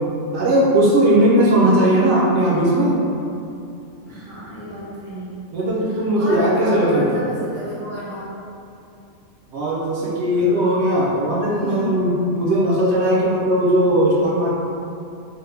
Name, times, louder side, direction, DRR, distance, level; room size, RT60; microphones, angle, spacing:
voice 1, 0.3-3.0 5.5-7.2 9.5-14.5, right 1 dB, 65° right, -6 dB, 0.8 m, -18 dB
voice 2, 4.1-5.4 5.9-8.3 10.3-10.5 11.6-11.9, left 1 dB, 15° left, -10 dB, 0.6 m, -31 dB
3.2 x 2.1 x 3.3 m, 2.6 s
omnidirectional pair, 1.3 m